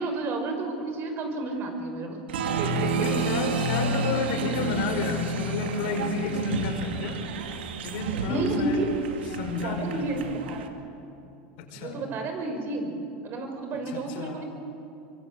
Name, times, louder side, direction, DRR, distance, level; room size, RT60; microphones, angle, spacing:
voice 1, 0.0-2.2 2.6-2.9 8.3-8.9 9.1-9.2 9.5-10.7 11.7-13.0 13.2-14.4, right 2 dB, 40° right, 5 dB, 5.7 m, -31 dB
Applause, 2.3-10.7, right 3 dB, 90° right, 2.6 m, -30 dB
voice 2, 2.9-8.8 9.3-10.2 11.6-12.0 13.9-14.4, left 4 dB, 70° left, 4 dB, 5.1 m, -31 dB
25.0 x 24.0 x 8.5 m, 2.7 s
supercardioid pair, 115°, 6 cm